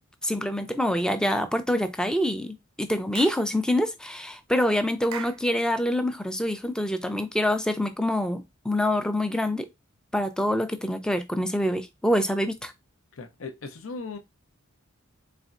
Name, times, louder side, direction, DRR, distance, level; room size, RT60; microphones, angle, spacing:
voice 1, 0.2-9.7 10.1-12.7, left 1 dB, 5° left, 0.4 m, -26 dB
Clapping / Chirp tweet, 3.1-3.5 5.1-5.5, right 9 dB, 75° right, 0.4 m, -38 dB
voice 2, 13.1-14.2, left 4 dB, 70° left, 0.6 m, -37 dB
4.1 x 3.4 x 2.4 m
head